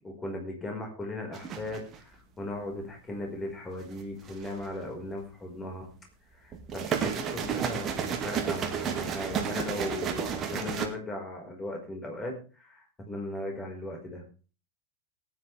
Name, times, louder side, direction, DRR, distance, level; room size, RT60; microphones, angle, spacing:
voice 1, 0.0-5.9 6.4-14.2, left 1 dB, 15° left, 2 dB, 5.1 m, -37 dB
sound 1, 1.3-2.0 3.9-4.6 6.5-10.9, right 7 dB, 30° right, 2.2 m, -32 dB
18.0 x 10.0 x 3.5 m, 0.35 s
figure-of-eight pair, 90°, 0 cm